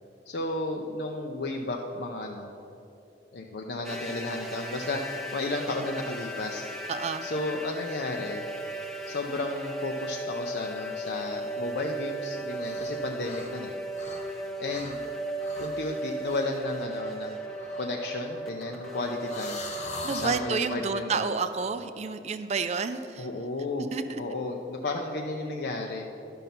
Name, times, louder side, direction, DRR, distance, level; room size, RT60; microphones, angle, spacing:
voice 1, 0.3-2.5 3.3-6.6 7.2-8.4 9.1-13.7 14.6-15.0 15.6-17.4 17.8-19.6 20.1-21.4 23.2-23.9 24.2-26.1, left 2 dB, 65° left, 1 dB, 0.6 m, -33 dB
sound 1, 3.8-20.9, right 1 dB, ahead, 0.6 m, -36 dB
voice 2, 6.9-7.3 20.0-23.3 23.9-24.2, right 5 dB, 40° right, 10 dB, 0.4 m, -30 dB
sound 2, 12.5-12.9 13.2-14.4 14.7-15.0 15.4-15.8 16.2-16.5 17.5-20.5, left 2 dB, 40° left, 1.1 m, -42 dB
11.0 x 5.4 x 5.9 m, 2.8 s
head